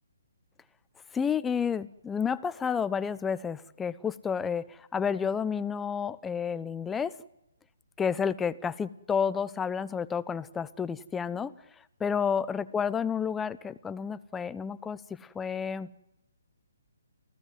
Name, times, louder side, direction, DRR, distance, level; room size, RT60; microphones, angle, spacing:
voice 1, 1.1-7.1 8.0-11.5 12.0-15.9, left 7 dB, 10° left, 15 dB, 0.9 m, -30 dB
29.0 x 16.5 x 9.4 m, 0.86 s
figure-of-eight pair, 135°, 0 cm